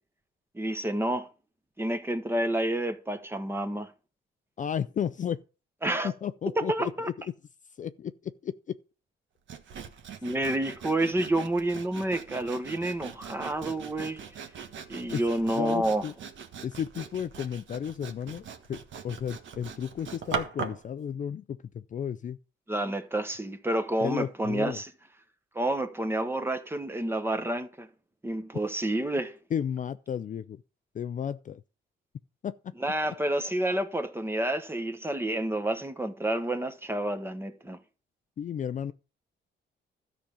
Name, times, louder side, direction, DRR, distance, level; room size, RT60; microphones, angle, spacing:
voice 1, 0.5-1.3 1.8-3.9 5.8-6.1 6.5-7.1 10.2-14.2 14.9-16.0 22.7-24.9 25.5-27.9 28.2-29.4 32.8-37.8, right 1 dB, 10° right, 1.2 m, -29 dB
voice 2, 4.6-5.4 6.0-6.9 7.8-8.8 15.1-15.2 15.6-16.1 16.6-22.4 24.0-24.8 29.5-30.6 30.9-31.6 32.4-32.5 38.4-38.9, left 8 dB, 40° left, 0.4 m, -33 dB
Sawing, 9.5-20.9, right 6 dB, 70° right, 1.5 m, -41 dB
13.0 x 5.2 x 7.1 m
cardioid pair, 135°, 20 cm